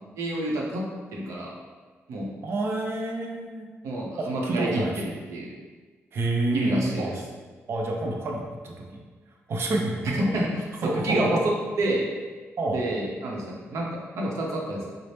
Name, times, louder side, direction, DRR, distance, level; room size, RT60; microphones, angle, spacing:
voice 1, 0.2-0.8 1.1-1.5 2.1-2.3 3.8-5.5 6.5-7.1 10.3-12.1 12.7-14.9, right 1 dB, 90° right, -2 dB, 0.7 m, -28 dB
voice 2, 2.4-3.7 4.2-5.0 6.1-7.1 7.7-9.0 9.5-10.3 10.8-11.4 12.6-12.8, right 2 dB, 55° right, 1 dB, 0.5 m, -28 dB
4.1 x 2.0 x 3.3 m, 1.4 s
wide cardioid pair, 140°, 5 cm